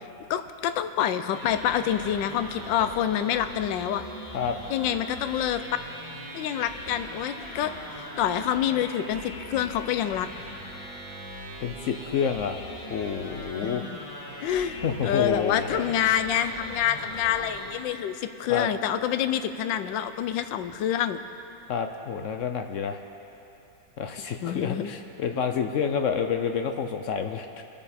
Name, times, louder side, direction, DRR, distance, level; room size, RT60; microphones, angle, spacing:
voice 1, 0.3-4.0 4.7-5.6 6.3-10.3 13.5-14.0 14.4-21.2 24.2-24.9, left 10 dB, 90° left, 10 dB, 1.3 m, -27 dB
sound 1, 1.3-17.7, equal, 20° left, 2.2 m, -40 dB
voice 2, 11.6-12.6 12.9-13.8 14.8-15.8 18.5-18.7 21.7-23.0 24.0-27.6, left 6 dB, 70° left, 6 dB, 0.7 m, -28 dB
24.5 x 8.9 x 4.2 m, 3.0 s
omnidirectional pair, 1.9 m